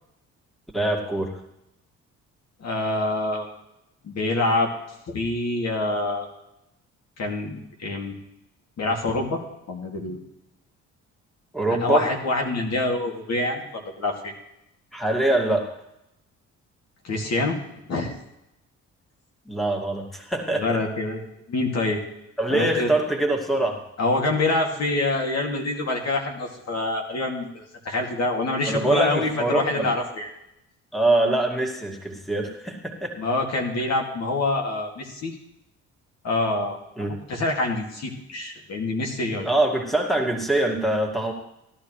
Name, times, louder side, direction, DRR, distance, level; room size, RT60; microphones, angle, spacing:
voice 1, 0.7-1.4 11.5-12.1 14.9-15.7 19.5-20.8 22.4-23.8 28.7-29.9 30.9-33.2 37.0-37.1 39.4-41.3, right 2 dB, ahead, 1 dB, 2.3 m, -24 dB
voice 2, 2.6-3.5 4.0-4.7 5.1-6.3 7.2-8.1 8.8-9.4 9.7-10.2 11.7-14.3 17.0-18.1 20.6-21.2 21.5-22.0 22.5-22.9 24.0-30.3 33.2-35.3 36.2-36.8 37.3-39.5, left 2 dB, 60° left, 1 dB, 2.5 m, -26 dB
16.5 x 12.0 x 3.3 m, 0.85 s
cardioid pair, 90°, 30 cm